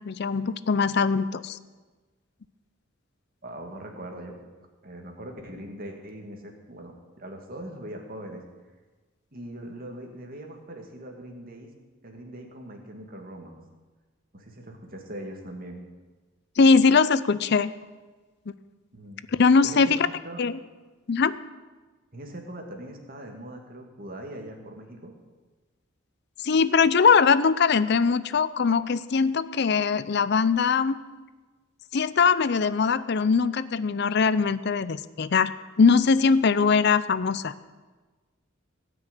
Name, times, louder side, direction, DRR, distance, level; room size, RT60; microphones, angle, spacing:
voice 1, 0.0-1.6 16.6-17.7 19.3-20.1 20.4-20.6 21.1-21.4 26.4-31.0 31.9-35.5 35.8-37.5, left 5 dB, 55° left, 15 dB, 0.5 m, -21 dB
voice 2, 3.4-4.4 4.8-8.4 9.3-11.7 12.0-13.6 14.3-15.8 18.9-19.2 19.6-19.9 20.2-20.4 22.1-25.1, right 1 dB, 45° right, 3 dB, 2.1 m, -41 dB
17.0 x 6.2 x 9.1 m, 1.3 s
head